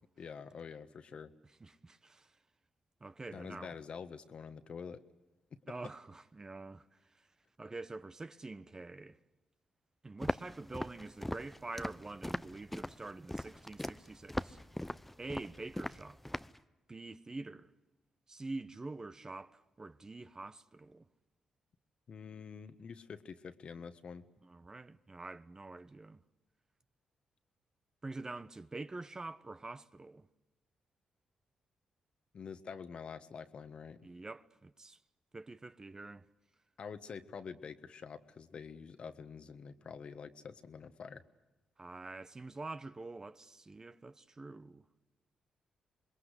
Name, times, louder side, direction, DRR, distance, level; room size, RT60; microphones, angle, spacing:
voice 1, 0.2-1.3 3.3-5.0 5.8-5.9 22.1-24.2 32.3-34.0 36.8-41.2, left 6 dB, 55° left, 1.5 m, -47 dB
voice 2, 1.6-2.3 3.0-3.8 5.7-6.9 7.1-7.3 7.6-9.2 10.0-14.6 15.2-16.2 16.9-17.7 18.3-21.1 24.4-26.2 28.0-30.3 34.0-35.0 35.3-36.3 41.8-44.9, right 3 dB, 30° right, 1.1 m, -46 dB
Walk footsteps, 10.2-16.6, left 1 dB, 5° left, 0.8 m, -40 dB
27.5 x 21.5 x 8.2 m
hypercardioid pair, 45°, 2 cm